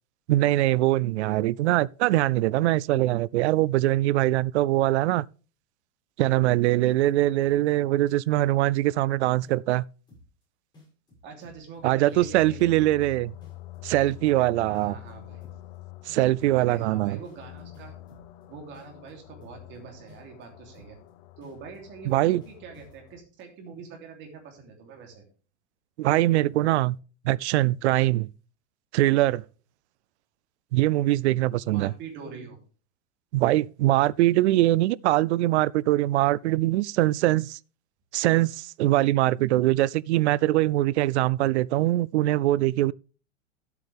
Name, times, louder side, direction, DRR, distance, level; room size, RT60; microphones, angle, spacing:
voice 1, 0.3-5.3 6.2-9.8 11.8-13.3 13.8-14.9 16.1-17.2 22.1-22.4 26.0-27.0 27.2-28.3 28.9-29.4 30.7-31.9 33.3-37.6 38.1-42.9, right 16 dB, 70° right, 0.5 m, -22 dB
sound 1, 7.1-7.8 8.1-9.1 9.4-9.8 10.1-10.4 10.7-13.1 13.4-14.4 14.7-15.1 15.4-15.8 16.1-18.4 18.7-19.8 20.1-20.4 20.7-21.1 21.4-23.2, left 1 dB, 10° left, 6.9 m, -54 dB
voice 2, 11.2-13.1 14.6-15.5 16.5-18.0 18.5-21.0 21.4-25.2 31.6-32.6, right 5 dB, 30° right, 3.2 m, -44 dB
sound 2, 12.1-23.2, left 15 dB, 40° left, 0.8 m, -47 dB
12.5 x 8.1 x 3.5 m
supercardioid pair, 155°, 36 cm